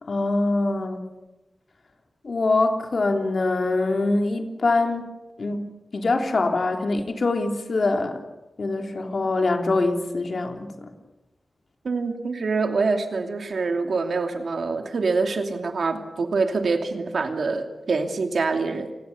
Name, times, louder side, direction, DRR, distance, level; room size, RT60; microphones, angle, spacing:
voice 1, 0.0-1.0 2.2-5.1 5.4-5.7 5.9-8.2 8.6-10.9, left 2 dB, 60° left, 4 dB, 3.2 m, -24 dB
voice 2, 11.8-18.9, right 4 dB, 75° right, 5 dB, 2.7 m, -25 dB
28.5 x 20.0 x 7.1 m, 1.1 s
wide cardioid pair, 85°, 0 cm